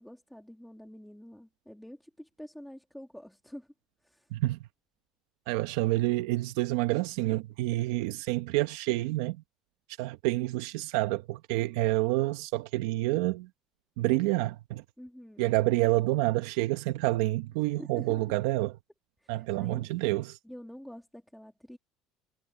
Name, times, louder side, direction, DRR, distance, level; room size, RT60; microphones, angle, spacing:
voice 1, 0.0-3.7 4.0-4.3 15.0-15.5 17.7-18.2 19.2-19.9 20.4-21.8, equal, ahead, 2.7 m, -47 dB
voice 2, 4.3-4.7 5.5-9.4 10.0-13.5 14.0-14.8 15.4-18.8 19.3-20.4, right 18 dB, 80° right, 1.1 m, -28 dB
cardioid pair, 140°, 0 cm